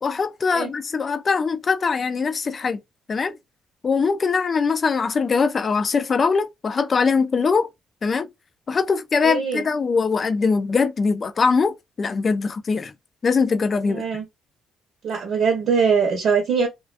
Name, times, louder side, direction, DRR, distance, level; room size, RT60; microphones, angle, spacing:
voice 1, 0.0-2.8 3.1-3.4 3.8-7.7 8.0-8.3 8.7-12.9 13.2-14.0, left 5 dB, 40° left, 0.4 m, -22 dB
voice 2, 9.2-9.6 13.9-14.2 15.0-16.7, right 5 dB, 65° right, 0.8 m, -22 dB
2.4 x 2.2 x 2.4 m
cardioid pair, 90°, 0 cm